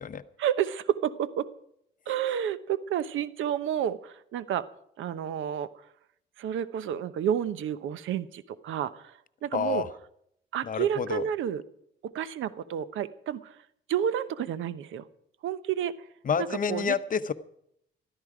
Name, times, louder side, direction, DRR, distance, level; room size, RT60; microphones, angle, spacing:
voice 1, 0.4-1.5 2.1-4.7 5.0-5.7 6.4-9.1 9.4-9.8 10.5-11.6 12.0-13.6 13.9-15.0 15.4-15.9 16.7-17.0, right 9 dB, 80° right, 15 dB, 0.9 m, -30 dB
voice 2, 9.5-9.9 10.6-11.2 16.2-17.3, left 6 dB, 45° left, 12 dB, 0.9 m, -29 dB
14.5 x 13.5 x 4.9 m, 0.74 s
cardioid pair, 90°, 20 cm